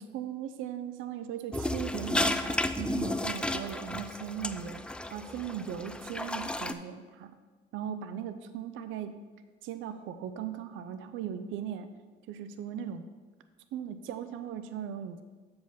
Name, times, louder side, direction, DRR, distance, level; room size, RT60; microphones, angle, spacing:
voice 1, 0.0-4.8 5.1-7.3 7.7-9.1 9.6-11.9 12.3-13.0 13.7-15.2, right 8 dB, 90° right, 10 dB, 0.5 m, -38 dB
sound 1, 1.5-6.7, left 1 dB, 5° left, 0.4 m, -33 dB
7.3 x 5.2 x 5.5 m, 1.3 s
cardioid pair, 90°, 20 cm